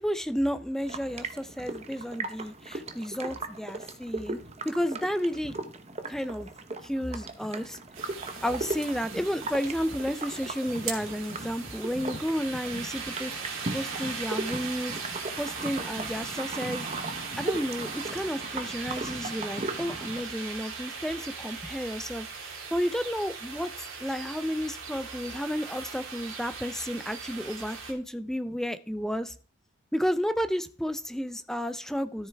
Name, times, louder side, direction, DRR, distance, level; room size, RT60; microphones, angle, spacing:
voice 1, 0.0-5.5 6.1-6.5 6.8-7.8 8.4-13.3 13.7-16.9 17.4-29.3 29.9-32.3, equal, ahead, 0.5 m, -32 dB
sound 1, 0.8-20.2, right 2 dB, 30° right, 0.9 m, -38 dB
sound 2, 7.9-27.9, right 5 dB, 80° right, 3.0 m, -39 dB
13.0 x 7.7 x 3.5 m
head